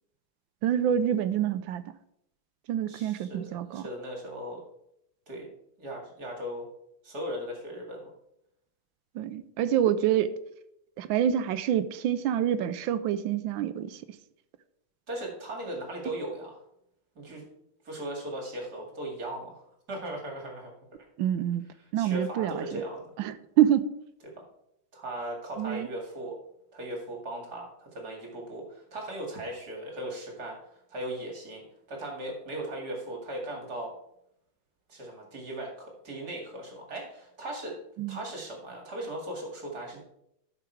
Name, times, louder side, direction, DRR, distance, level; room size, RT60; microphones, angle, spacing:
voice 1, 0.6-1.8 2.7-3.9 9.1-10.3 11.0-14.0 21.2-21.6 21.9-22.8 23.2-23.9 25.6-25.9 38.0-38.2, right 10 dB, 90° right, 12 dB, 1.4 m, -27 dB
voice 2, 2.9-4.6 5.3-5.5 5.8-6.7 7.0-8.1 15.1-16.6 17.2-17.4 17.8-19.6 19.9-20.7 22.0-23.1 24.2-24.3 24.9-26.3 26.7-30.6 30.9-31.6 31.9-33.9 34.9-37.8 38.1-40.0, right 1 dB, 55° right, 0 dB, 2.8 m, -38 dB
13.0 x 5.9 x 4.6 m, 0.77 s
omnidirectional pair, 2.1 m